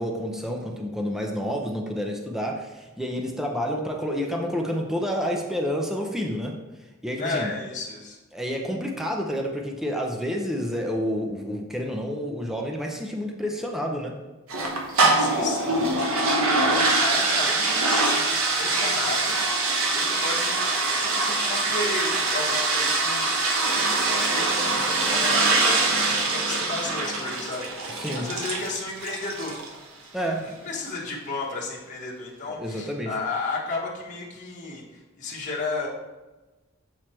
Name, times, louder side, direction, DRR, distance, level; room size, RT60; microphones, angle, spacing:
voice 1, 0.0-6.5 7.0-7.5 8.3-14.1 27.9-28.3 30.1-30.6 32.5-33.2, equal, ahead, 1 dB, 0.6 m, -29 dB
voice 2, 7.2-8.2 14.8-19.6 19.9-20.6 20.9-23.3 24.3-29.6 30.1-35.9, left 3 dB, 40° left, -5 dB, 1.2 m, -33 dB
sound 1, 14.5-29.8, right 3 dB, 90° right, 1.0 m, -24 dB
7.4 x 3.2 x 4.3 m, 1.1 s
head